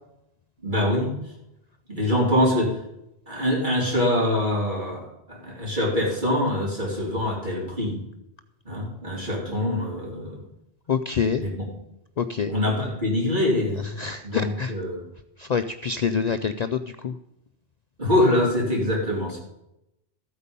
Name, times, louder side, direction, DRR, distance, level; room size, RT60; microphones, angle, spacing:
voice 1, 0.6-1.1 1.9-2.7 3.3-8.0 8.7-10.4 11.4-11.7 12.5-14.0 14.2-15.0 18.0-19.4, left 1 dB, 45° right, -3 dB, 4.1 m, -24 dB
voice 2, 10.9-11.4 12.2-12.5 14.0-14.7 15.4-17.1, left 6 dB, 50° left, 10 dB, 0.5 m, -26 dB
14.0 x 8.3 x 5.3 m, 0.85 s
omnidirectional pair, 1.1 m